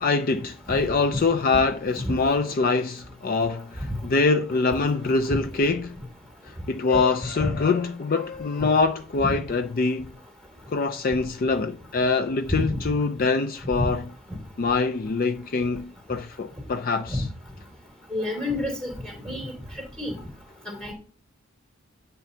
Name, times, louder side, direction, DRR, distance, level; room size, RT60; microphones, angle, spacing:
voice 1, 0.0-6.0 6.4-10.1 10.7-14.0 14.6-17.3, left 4 dB, 45° left, 0.4 m, -24 dB
voice 2, 18.1-19.5 20.0-20.2 20.7-20.9, left 1 dB, 5° left, 2.7 m, -29 dB
10.5 x 6.8 x 2.8 m
head